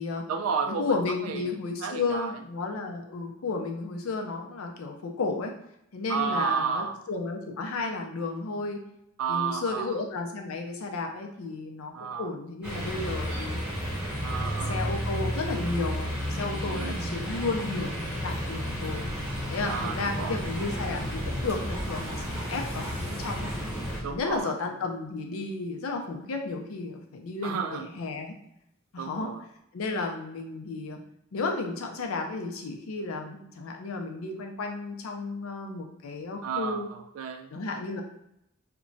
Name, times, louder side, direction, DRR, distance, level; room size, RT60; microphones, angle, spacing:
voice 1, 0.3-0.9 1.2-1.5 1.8-2.4 6.1-7.0 9.2-10.0 11.9-12.3 14.2-14.8 16.7-17.0 19.6-20.4 24.0-24.5 27.4-27.9 29.0-29.4 36.4-37.5, right 6 dB, 75° right, 6 dB, 0.3 m, -32 dB
voice 2, 0.8-5.5 5.9-8.8 9.3-13.6 14.7-19.0 19.5-23.5 24.1-28.3 28.9-29.3 29.7-31.0 31.3-36.9 37.5-38.0, left 3 dB, 75° left, 3 dB, 0.5 m, -33 dB
sound 1, 12.6-24.0, equal, 5° right, 0.9 m, -32 dB
sound 2, 19.1-24.4, left 1 dB, 35° right, 0.8 m, -41 dB
Splash splatter, 21.5-23.5 24.2-24.4 25.0-25.1, left 1 dB, 25° left, 0.7 m, -47 dB
2.8 x 2.2 x 2.6 m, 0.78 s
head